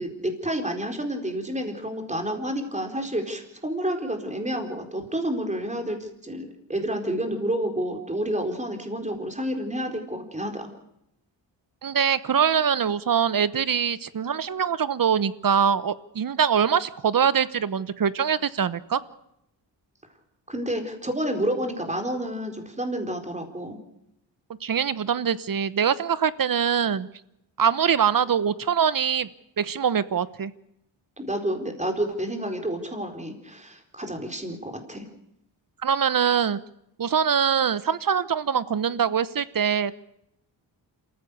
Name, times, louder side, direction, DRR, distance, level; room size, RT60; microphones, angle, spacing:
voice 1, 0.0-6.0 6.2-10.7 20.5-23.8 31.2-35.1, right 1 dB, 15° right, 4 dB, 4.4 m, -29 dB
voice 2, 11.8-19.0 24.6-27.1 27.6-29.3 29.6-30.5 35.8-36.6 37.0-39.9, right 7 dB, 45° right, 16 dB, 1.0 m, -23 dB
27.0 x 15.0 x 6.8 m, 0.81 s
cardioid pair, 75°, 45 cm